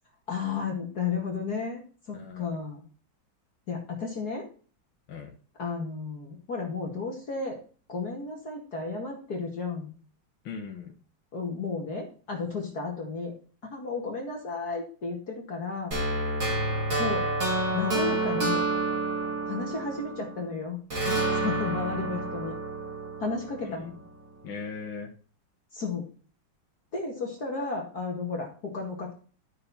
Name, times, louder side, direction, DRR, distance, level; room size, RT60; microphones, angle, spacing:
voice 1, 0.3-1.8 2.1-2.8 3.7-4.5 5.6-7.6 7.9-9.9 11.3-13.3 13.7-15.9 17.0-17.2 17.7-18.6 19.5-20.8 21.1-22.5 23.2-23.9 25.7-26.1 26.9-29.1, left 4 dB, 50° left, -1 dB, 2.7 m, -33 dB
voice 2, 2.1-2.6 5.1-5.4 10.4-10.9 23.6-24.0 24.4-25.1, left 6 dB, 70° left, 1 dB, 2.1 m, -39 dB
sound 1, 15.9-20.4 20.9-24.0, right 2 dB, 50° right, 3.7 m, -29 dB
12.5 x 6.8 x 4.3 m, 0.39 s
omnidirectional pair, 2.2 m